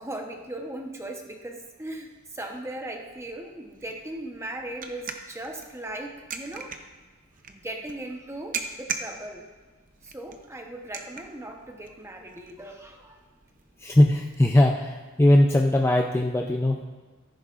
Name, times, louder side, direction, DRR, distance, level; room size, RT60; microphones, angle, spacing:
voice 1, 0.0-6.7 7.5-9.5 10.0-13.2, right 1 dB, 15° right, 3 dB, 0.9 m, -38 dB
sound 1, 3.1-14.4, right 5 dB, 40° right, 0.7 m, -41 dB
voice 2, 13.8-16.8, left 1 dB, 10° left, 1 dB, 0.5 m, -20 dB
14.0 x 10.5 x 2.5 m, 1.3 s
head